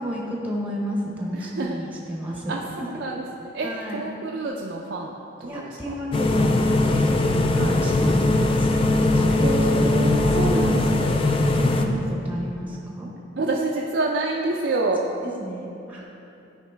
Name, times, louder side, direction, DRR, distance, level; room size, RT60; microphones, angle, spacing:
voice 1, 0.0-3.0 3.6-4.1 5.4-10.2 10.5-10.9 11.4-13.1 15.2-16.0, equal, 10° right, -2 dB, 0.8 m, -32 dB
voice 2, 1.4-1.8 2.5-2.6 3.0-3.3 3.5-5.1 5.4-5.9 7.5-7.8 9.3-11.2 13.4-15.1, right 2 dB, 65° right, -2 dB, 0.5 m, -28 dB
sound 1, 6.1-11.8, left 2 dB, 30° left, 0.4 m, -20 dB
10.0 x 4.7 x 3.4 m, 2.8 s
head